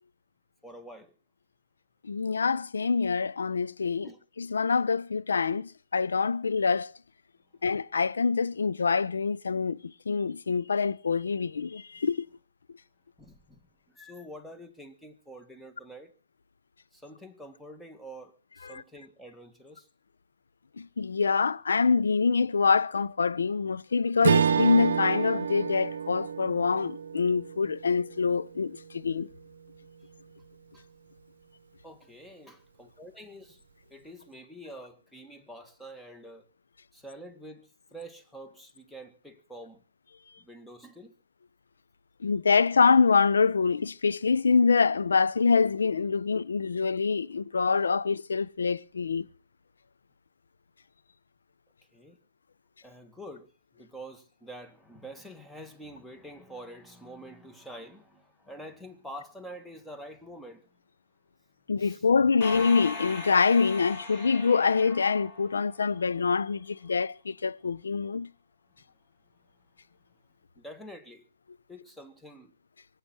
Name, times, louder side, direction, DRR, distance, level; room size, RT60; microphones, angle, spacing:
voice 1, 0.6-1.1 4.0-4.2 13.2-16.1 16.9-19.9 30.7-30.9 31.8-33.6 33.9-36.5 36.9-39.8 40.4-41.2 51.9-52.2 52.8-60.7 61.8-62.1 70.6-71.2 71.7-72.5, right 1 dB, 5° left, 1.9 m, -47 dB
voice 2, 2.0-4.1 4.4-6.9 7.6-12.3 18.6-18.8 20.8-29.3 42.2-49.3 61.7-68.3, left 5 dB, 75° left, 0.8 m, -25 dB
Strum, 24.2-28.8, right 7 dB, 65° right, 0.8 m, -29 dB
sound 1, 62.4-66.1, left 3 dB, 40° left, 5.2 m, -39 dB
24.0 x 8.6 x 6.1 m
hypercardioid pair, 130°, 0 cm